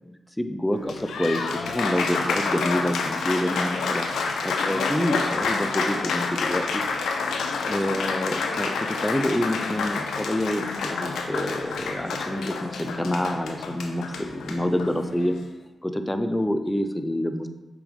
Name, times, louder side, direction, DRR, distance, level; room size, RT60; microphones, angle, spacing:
voice 1, 0.0-4.1 4.4-6.8 7.6-15.3 15.8-17.5, left 1 dB, 10° left, 8 dB, 0.6 m, -27 dB
Applause, 0.7-15.4, left 4 dB, 90° left, 0.6 m, -28 dB
6.9 x 5.0 x 3.4 m, 1.0 s
supercardioid pair, 45°, 0 cm